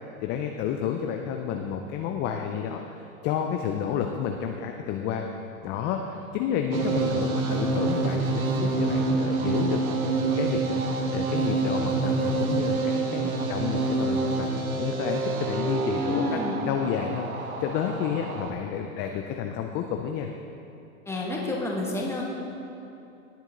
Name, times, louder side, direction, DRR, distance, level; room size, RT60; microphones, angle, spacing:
voice 1, 0.2-5.2 5.6-14.5 14.8-20.3, left 8 dB, 25° left, 4 dB, 0.5 m, -30 dB
sound 1, 6.7-18.5, right 3 dB, 85° right, 1.3 m, -27 dB
voice 2, 16.0-16.6 21.0-22.2, left 2 dB, 5° left, -3 dB, 1.8 m, -29 dB
18.0 x 7.3 x 3.8 m, 2.8 s
hypercardioid pair, 120°, 42 cm